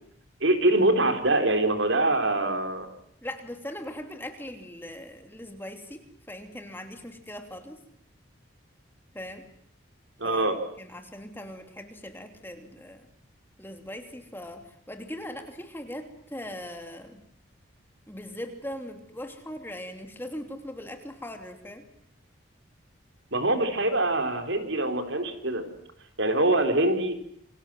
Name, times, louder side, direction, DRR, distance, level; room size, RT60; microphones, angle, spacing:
voice 1, 0.4-2.9 10.2-10.5 23.3-25.6 26.2-27.1, right 2 dB, 65° right, 6 dB, 4.1 m, -24 dB
voice 2, 3.2-7.8 9.1-9.5 10.2-13.1 13.6-17.2 18.1-21.8, left 1 dB, 10° left, 5 dB, 2.9 m, -40 dB
28.5 x 24.5 x 7.8 m, 0.68 s
head